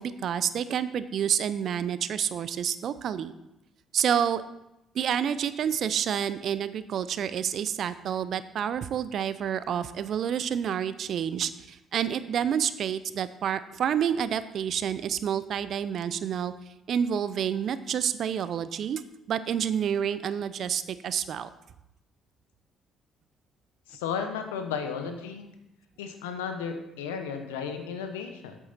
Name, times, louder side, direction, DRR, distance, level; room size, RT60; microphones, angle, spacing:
voice 1, 0.0-3.3 3.9-4.4 4.9-16.5 16.9-19.0 19.3-21.5, right 8 dB, 60° right, 14 dB, 0.5 m, -29 dB
voice 2, 23.9-25.5 26.0-28.6, left 6 dB, 90° left, 6 dB, 0.8 m, -34 dB
7.8 x 7.4 x 4.2 m, 0.89 s
hypercardioid pair, 55°, 0 cm